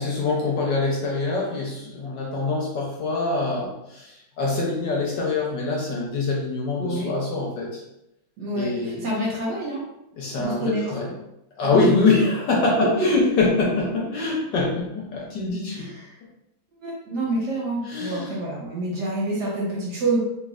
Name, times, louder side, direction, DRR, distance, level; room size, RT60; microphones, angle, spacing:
voice 1, 0.0-7.8 8.5-9.1 10.2-11.1 11.6-15.9 17.9-18.4, left 3 dB, 65° left, -3 dB, 1.2 m, -24 dB
voice 2, 6.8-7.1 8.4-9.8 10.4-10.9 11.6-11.9 12.8-13.1 15.7-16.1 16.8-20.2, right 2 dB, 65° right, -4 dB, 1.3 m, -27 dB
3.2 x 3.2 x 2.4 m, 0.86 s
omnidirectional pair, 2.2 m